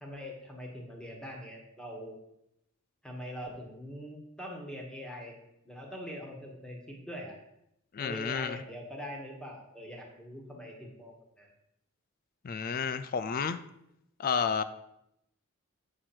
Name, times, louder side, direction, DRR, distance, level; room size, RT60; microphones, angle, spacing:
voice 1, 0.0-2.2 3.0-5.3 5.6-7.4 8.0-11.5, equal, 5° left, 0 dB, 1.4 m, -43 dB
voice 2, 7.9-8.6 12.4-13.6 14.2-14.6, left 6 dB, 45° left, 13 dB, 0.4 m, -31 dB
7.6 x 6.3 x 4.3 m, 0.81 s
head